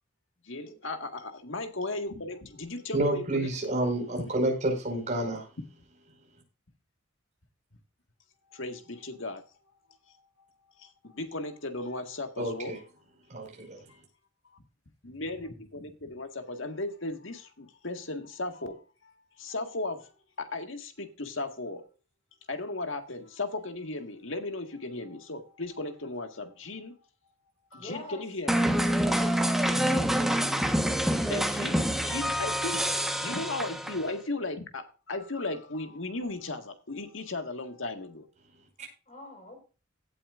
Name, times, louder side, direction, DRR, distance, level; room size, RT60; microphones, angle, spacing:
voice 1, 0.4-3.9 8.5-9.5 10.1-10.2 10.8-12.8 14.5-14.6 15.0-21.9 22.5-27.0 27.7-28.8 31.3-32.9 33.2-38.3, left 2 dB, 65° left, 1.8 m, -36 dB
voice 2, 2.9-5.5 12.4-12.8 13.3-13.9, right 1 dB, 35° right, 5.2 m, -29 dB
voice 3, 27.8-28.2 29.1-30.1 39.1-39.6, left 2 dB, 35° left, 5.0 m, -43 dB
sound 1, 28.5-34.1, equal, ahead, 1.2 m, -27 dB
17.0 x 8.7 x 2.5 m
head